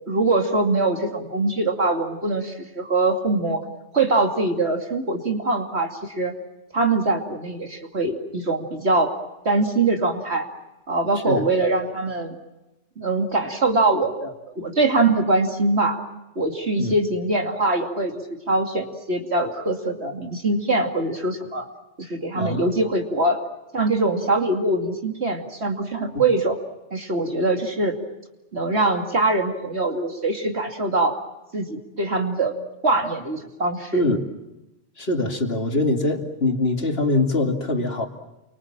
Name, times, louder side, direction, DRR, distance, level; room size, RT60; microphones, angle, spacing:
voice 1, 0.1-3.6 3.9-6.3 6.7-9.1 9.4-10.5 10.9-12.3 13.0-16.0 16.4-18.1 18.5-21.7 22.0-23.4 23.7-26.6 26.9-27.9 28.5-31.2 31.5-32.5 32.8-34.0, right 2 dB, 65° right, 4 dB, 2.8 m, -23 dB
voice 2, 22.3-22.7 33.9-34.2 35.0-38.1, left 2 dB, 55° left, 4 dB, 2.9 m, -23 dB
29.0 x 24.5 x 7.5 m, 1.0 s
omnidirectional pair, 1.2 m